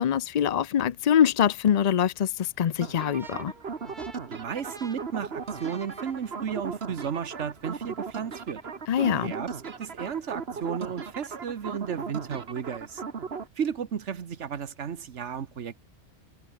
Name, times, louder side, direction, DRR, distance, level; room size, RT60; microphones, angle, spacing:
voice 1, 0.0-3.5 8.9-9.3, left 9 dB, 50° left, 0.5 m, -24 dB
sound 1, 2.8-13.5, right 5 dB, 65° right, 1.7 m, -37 dB
sound 2, 2.9-6.8, right 2 dB, 45° right, 4.3 m, -49 dB
voice 2, 4.3-8.6 9.0-13.0 13.5-15.8, right 7 dB, 90° right, 1.5 m, -34 dB
omnidirectional pair, 1.2 m